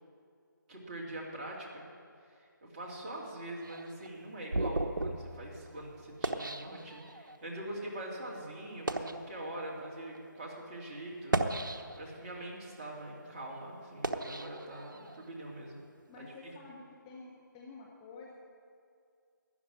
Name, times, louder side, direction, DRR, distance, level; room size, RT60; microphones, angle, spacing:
voice 1, 0.7-1.9 2.2-15.8 16.1-16.5, right 1 dB, 25° right, -3 dB, 2.7 m, -43 dB
sound 1, 3.6-7.4 8.0-8.2 8.7-9.2 10.0-10.2 11.1-12.2 12.7-15.2, right 2 dB, 70° right, 1.1 m, -36 dB
voice 2, 16.1-18.3, left 3 dB, 15° left, -3 dB, 1.0 m, -50 dB
13.5 x 9.5 x 9.5 m, 2.3 s
figure-of-eight pair, 160°, 11 cm